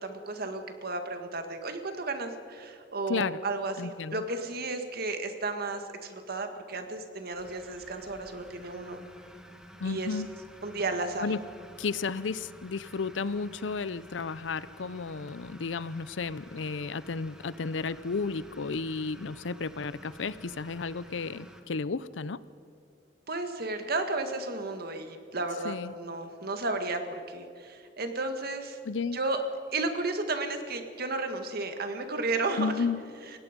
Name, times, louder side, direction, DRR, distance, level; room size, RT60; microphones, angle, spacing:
voice 1, 0.0-9.0 9.8-10.1 10.6-11.3 23.3-28.8 29.1-29.4 29.7-32.9, right 3 dB, 55° right, 6 dB, 1.9 m, -33 dB
voice 2, 3.1-3.4 3.8-4.2 9.8-10.3 11.2-11.4 11.8-22.4 25.6-25.9 28.8-29.2 32.6-33.0, left 4 dB, 90° left, 17 dB, 0.6 m, -33 dB
sound 1, 7.3-21.6, equal, 5° right, 1.7 m, -51 dB
29.5 x 17.5 x 5.3 m, 2.2 s
head